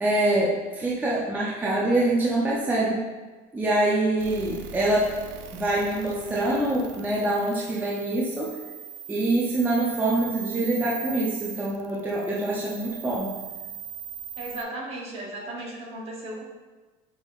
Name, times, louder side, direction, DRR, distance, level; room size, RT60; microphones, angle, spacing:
voice 1, 0.0-3.0 3.5-5.1 5.5-8.5 9.1-13.4, right 2 dB, 10° right, -5 dB, 0.6 m, -25 dB
sound 1, 4.2-14.6, right 8 dB, 70° right, 0.5 m, -40 dB
voice 2, 14.4-16.4, right 1 dB, 40° right, -1 dB, 1.0 m, -36 dB
6.1 x 3.5 x 2.4 m, 1.3 s
cardioid pair, 135°, 16 cm